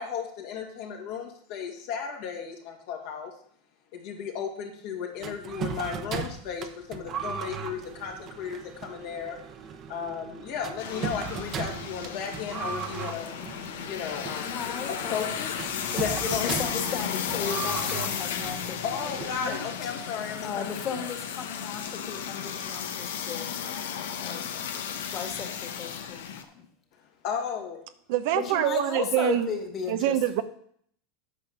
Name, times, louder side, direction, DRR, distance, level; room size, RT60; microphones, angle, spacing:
voice 1, 0.0-3.3 3.9-9.4 9.9-13.3 13.9-14.5 14.9-15.5 15.9-16.6 18.8-21.0 27.2-27.8, left 7 dB, 60° left, 1 dB, 2.2 m, -34 dB
sound 1, 5.2-19.9, right 6 dB, 40° right, 1.0 m, -38 dB
sound 2, 10.8-26.4, left 8 dB, 80° left, 1.0 m, -34 dB
voice 2, 14.3-15.4 15.9-19.9 20.4-23.5 24.2-24.5 25.1-26.6 28.3-30.4, left 6 dB, 40° left, 3 dB, 2.2 m, -35 dB
voice 3, 28.1-29.5 29.9-30.4, right 12 dB, 65° right, 10 dB, 0.8 m, -25 dB
9.0 x 5.3 x 6.0 m, 0.64 s
hypercardioid pair, 105°, 0 cm